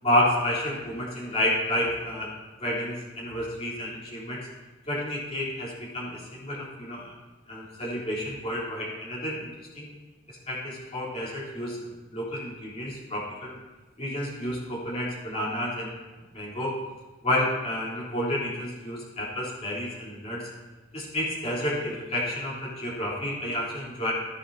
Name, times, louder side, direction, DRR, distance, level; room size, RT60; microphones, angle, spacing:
voice 1, 0.0-2.3 2.6-4.5 4.9-7.1 7.5-9.9 10.3-11.8 12.1-13.6 14.0-16.0 16.3-16.8 17.2-20.5 20.9-24.1, left 1 dB, 30° left, -6 dB, 3.8 m, -30 dB
14.5 x 10.5 x 2.9 m, 1.2 s
head